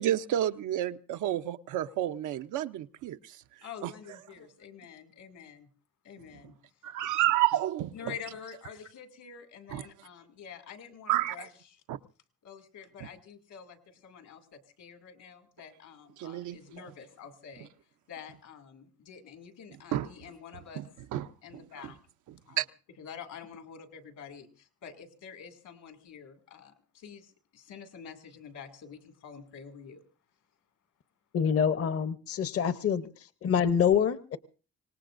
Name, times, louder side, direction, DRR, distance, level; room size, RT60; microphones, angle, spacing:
voice 1, 0.0-3.2 6.8-8.1 9.7-9.8 11.1-11.3 11.9-12.0 16.2-16.6 19.9-20.1 21.1-21.2 22.6-22.7, right 13 dB, 85° right, 0.7 m, -29 dB
voice 2, 3.6-5.7 6.0-6.6 7.9-11.8 12.4-17.7 18.1-21.0 21.4-22.0 22.5-22.6 23.0-30.0, left 7 dB, 80° left, 2.4 m, -47 dB
voice 3, 31.3-33.1 33.4-34.4, left 7 dB, 50° left, 0.8 m, -26 dB
25.5 x 18.5 x 2.6 m
cardioid pair, 90°, 30 cm